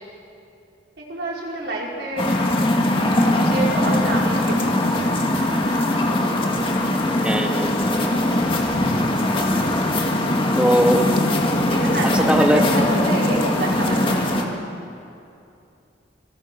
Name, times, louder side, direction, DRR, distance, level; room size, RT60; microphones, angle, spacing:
voice 1, 1.0-2.4 3.2-5.9 11.7-14.7, right 1 dB, 65° right, -2 dB, 4.8 m, -29 dB
sound 1, 2.2-14.4, left 1 dB, 25° left, 2.1 m, -21 dB
voice 2, 7.2-7.9 10.6-11.1 12.1-12.6, equal, 5° right, 2 dB, 1.8 m, -19 dB
27.5 x 23.5 x 6.1 m, 2.7 s
head